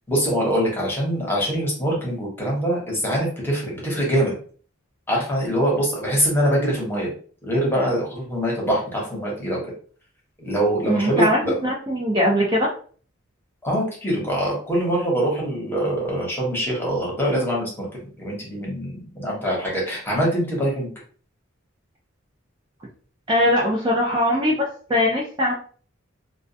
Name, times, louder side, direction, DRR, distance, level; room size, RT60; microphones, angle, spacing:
voice 1, 0.1-4.4 5.1-7.1 7.4-9.6 10.4-11.5 13.6-20.9, equal, 10° left, -4 dB, 0.9 m, -23 dB
voice 2, 10.8-12.7 23.3-25.5, left 1 dB, 25° right, -3 dB, 0.4 m, -21 dB
2.2 x 2.2 x 2.6 m, 0.43 s
head